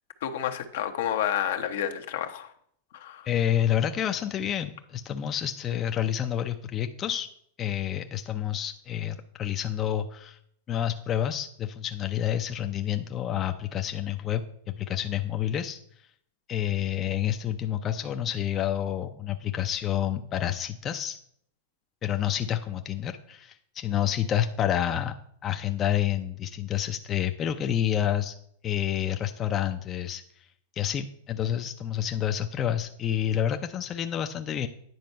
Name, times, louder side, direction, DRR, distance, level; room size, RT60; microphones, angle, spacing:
voice 1, 0.2-2.5 2.9-3.3, left 10 dB, 70° left, 7 dB, 0.8 m, -30 dB
voice 2, 3.3-7.3 7.6-10.4 10.7-15.8 16.5-21.2 22.0-25.2 25.4-28.4 28.6-30.5 30.8-34.7, left 10 dB, 30° left, 7 dB, 0.5 m, -29 dB
9.4 x 4.3 x 5.3 m, 0.67 s
hypercardioid pair, 120°, 0 cm